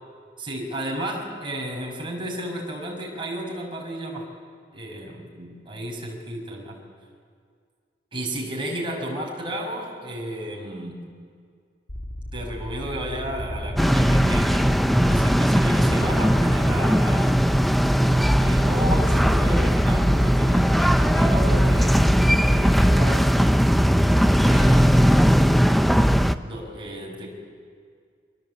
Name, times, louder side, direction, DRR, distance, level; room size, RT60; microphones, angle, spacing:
voice 1, 0.4-4.3 4.7-6.8 8.1-11.1 12.3-17.4 18.3-22.0 22.4-23.3 24.4-25.3 26.4-27.3, right 1 dB, 30° right, -1 dB, 6.1 m, -33 dB
sound 1, 11.9-17.9, equal, 55° left, 2.0 m, -35 dB
sound 2, 13.8-26.3, equal, ahead, 0.7 m, -18 dB
28.5 x 25.0 x 8.4 m, 2.1 s
head